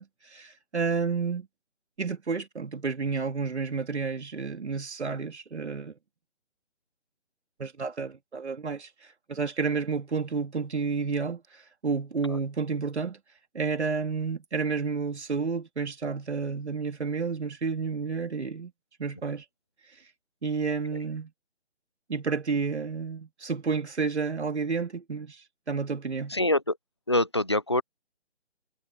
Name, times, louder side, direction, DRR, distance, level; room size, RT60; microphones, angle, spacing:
voice 1, 0.0-1.5 2.0-5.9 7.6-8.9 9.3-13.2 13.5-18.7 19.0-19.4 20.4-21.3 22.1-26.4, right 5 dB, 75° right, 3.6 m, -30 dB
voice 2, 26.3-26.8 27.1-27.8, left 1 dB, 25° left, 0.4 m, -25 dB
figure-of-eight pair, 155°, 34 cm